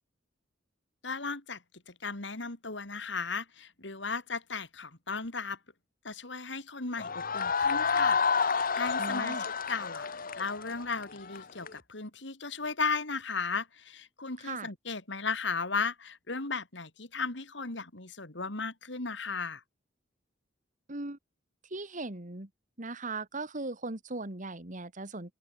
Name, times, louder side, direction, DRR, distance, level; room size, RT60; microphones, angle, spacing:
voice 1, 1.0-1.6 1.9-5.6 6.0-19.6, left 4 dB, 70° left, 3.5 m, -36 dB
sound 1, 7.0-11.7, left 5 dB, 50° left, 1.8 m, -29 dB
voice 2, 9.0-9.4 14.4-14.7 20.9-21.2 21.7-22.5 22.8-25.3, right 2 dB, 45° right, 2.4 m, -38 dB
head